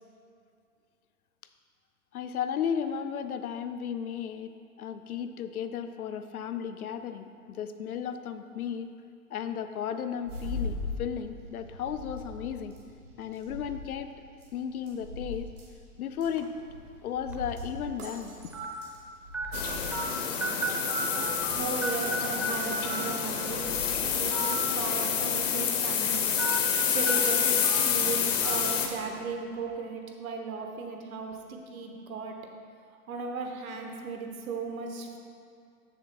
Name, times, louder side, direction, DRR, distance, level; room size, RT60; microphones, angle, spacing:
voice 1, 2.1-8.9 9.3-12.8 13.2-14.1 14.5-15.5 16.0-16.5 17.0-18.4, left 8 dB, 75° left, 9 dB, 0.7 m, -34 dB
sound 1, 10.2-26.1, left 2 dB, 85° right, 1.8 m, -42 dB
Phone numbers sound, 16.4-16.6 17.3-17.4 18.5-18.6 19.3-19.5 19.9-20.0 20.4-21.6 21.8-22.5 22.8-23.0 24.2-24.5 24.9-25.0 26.4-26.6 27.1-27.2 27.6-27.8 28.4-28.5, right 2 dB, 5° right, 0.7 m, -32 dB
sound 2, 19.5-28.9, left 7 dB, 55° left, 1.1 m, -28 dB
voice 2, 21.5-23.7 24.1-26.6 26.9-32.4 33.1-35.2, right 4 dB, 65° right, 3 dB, 1.3 m, -36 dB
7.1 x 6.6 x 4.4 m, 2.4 s
hypercardioid pair, 110°, 44 cm